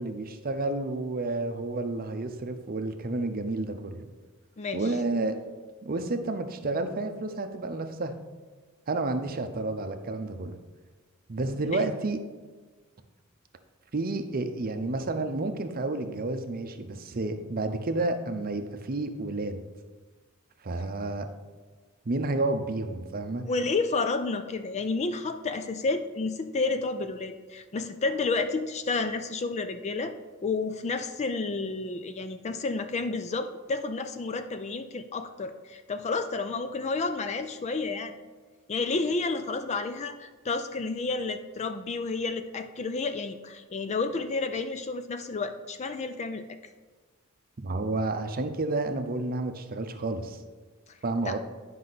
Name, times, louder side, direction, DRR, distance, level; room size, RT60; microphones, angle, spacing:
voice 1, 0.0-4.1 4.7-5.4 5.8-8.1 8.9-10.6 11.3-12.2 13.9-19.6 20.6-21.3 22.1-23.4 47.6-50.4 51.0-51.4, right 2 dB, 45° right, 7 dB, 0.7 m, -30 dB
voice 2, 4.6-4.9 11.7-11.9 23.4-30.1 30.4-38.1 38.7-46.4 50.9-51.0 51.3-51.4, left 3 dB, 30° left, 9 dB, 0.4 m, -30 dB
9.3 x 5.5 x 4.0 m, 1.4 s
head